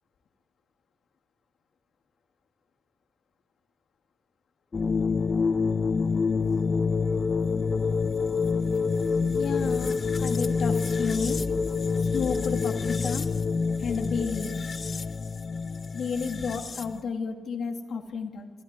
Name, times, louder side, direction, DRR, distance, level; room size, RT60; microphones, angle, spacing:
sound 1, 4.7-17.0, left 5 dB, 40° left, 0.7 m, -27 dB
voice 1, 8.0-8.6 9.2-11.6 12.0-13.3 13.8-14.7 15.9-18.5, left 5 dB, 75° left, 5 dB, 2.2 m, -33 dB
26.0 x 14.5 x 9.6 m, 1.5 s
cardioid pair, 110°, 0 cm